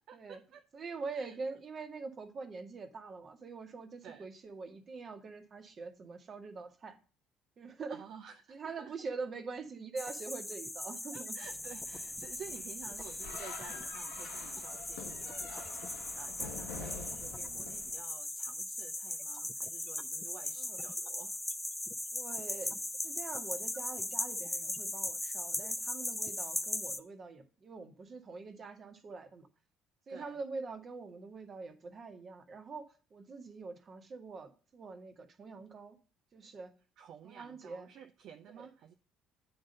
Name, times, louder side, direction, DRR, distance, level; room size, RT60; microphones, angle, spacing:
voice 1, 0.0-0.6 1.1-1.4 4.0-4.3 7.9-8.9 11.1-15.9 16.1-21.4 30.1-30.4 37.0-38.9, right 8 dB, 55° right, 0.5 m, -52 dB
voice 2, 0.7-7.0 7.6-8.0 8.5-11.4 17.4-17.8 20.6-20.8 22.1-29.5 30.1-36.0 36.3-36.7 37.2-37.9 38.5-38.7, right 4 dB, 40° right, 1.3 m, -44 dB
sound 1, 10.0-27.0, left 1 dB, 10° left, 0.6 m, -39 dB
sound 2, 11.4-18.0, left 5 dB, 75° left, 1.1 m, -48 dB
9.3 x 3.8 x 5.3 m
figure-of-eight pair, 50°, 0 cm